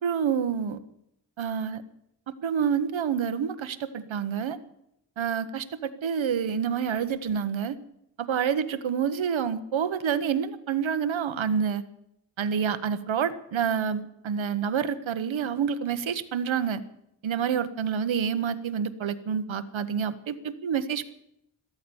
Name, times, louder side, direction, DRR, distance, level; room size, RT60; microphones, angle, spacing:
voice 1, 0.0-0.8 1.4-1.8 2.4-4.6 5.2-7.8 8.2-11.8 12.4-16.8 17.2-21.1, right 7 dB, 80° right, 12 dB, 1.1 m, -28 dB
14.0 x 13.5 x 7.0 m, 0.79 s
cardioid pair, 65°, 46 cm